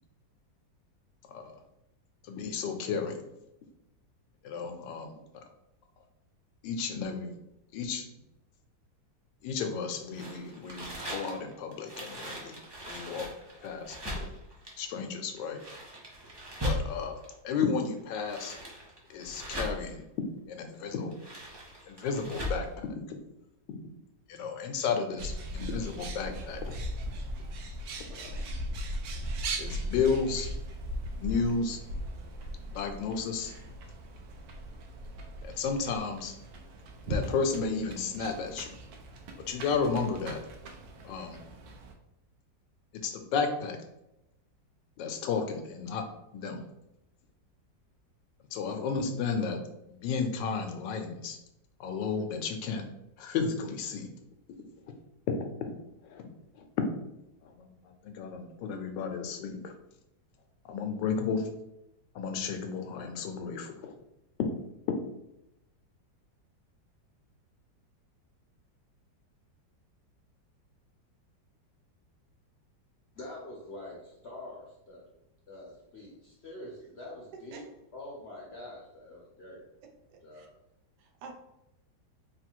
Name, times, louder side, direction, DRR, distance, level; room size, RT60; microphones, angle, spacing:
voice 1, 2.2-3.2 4.4-5.1 6.6-7.4 7.7-8.1 9.4-13.3 13.6-14.3 14.8-15.6 16.6-17.2 17.4-18.6 19.1-20.0 20.5-21.2 21.9-23.2 23.7-23.8 24.3-26.7 28.1-28.4 29.6-30.5 31.2-31.8 32.6-33.5 35.4-36.4 37.1-38.7 39.5-40.4 41.0-41.4 43.0-43.8 45.0-46.0 46.3-46.6 48.5-49.6 49.9-51.4 51.8-52.8 53.2-54.1 55.4-55.7 56.0-56.2 56.5-56.6 57.4-59.7 60.7-61.5 62.1-63.9 64.4-64.5, left 5 dB, 80° left, 5 dB, 1.3 m, -33 dB
sound 1, 10.1-17.3 18.0-20.0 20.9-22.7, equal, 35° right, 0.4 m, -38 dB
Bird, 25.2-41.9, right 1 dB, 90° right, 1.4 m, -39 dB
voice 2, 73.1-75.2 75.5-77.6 77.9-79.6 80.2-80.5, left 1 dB, 55° left, -3 dB, 0.7 m, -45 dB
voice 3, 80.1-80.5 81.0-81.4, right 4 dB, 70° right, 2 dB, 1.3 m, -48 dB
3.7 x 2.4 x 4.4 m, 0.87 s
omnidirectional pair, 2.0 m